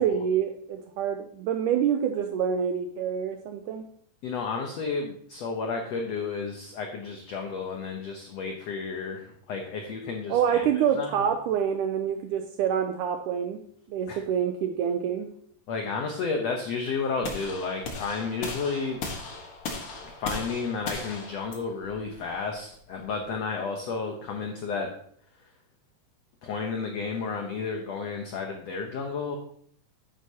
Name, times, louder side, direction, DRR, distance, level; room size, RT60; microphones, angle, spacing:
voice 1, 0.0-3.9 10.3-13.6 13.9-15.3, right 8 dB, 80° right, 6 dB, 1.8 m, -26 dB
voice 2, 4.2-10.7 11.0-11.3 14.1-14.2 15.7-19.0 20.2-24.9 26.4-29.4, left 4 dB, 80° left, 2 dB, 1.4 m, -32 dB
sound 1, 17.2-23.3, left 3 dB, 55° left, 1.7 m, -37 dB
9.5 x 9.0 x 2.8 m, 0.62 s
omnidirectional pair, 4.2 m